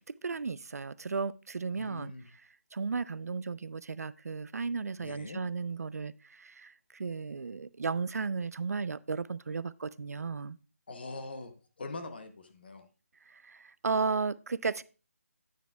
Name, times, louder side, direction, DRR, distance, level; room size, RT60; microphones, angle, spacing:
voice 1, 0.2-2.1 2.7-10.6 13.3-14.8, right 4 dB, 75° right, 0.4 m, -34 dB
voice 2, 1.7-2.3 5.0-5.4 10.9-12.9, left 2 dB, 40° left, 0.8 m, -43 dB
9.2 x 9.2 x 2.3 m
hypercardioid pair, 175°, 8 cm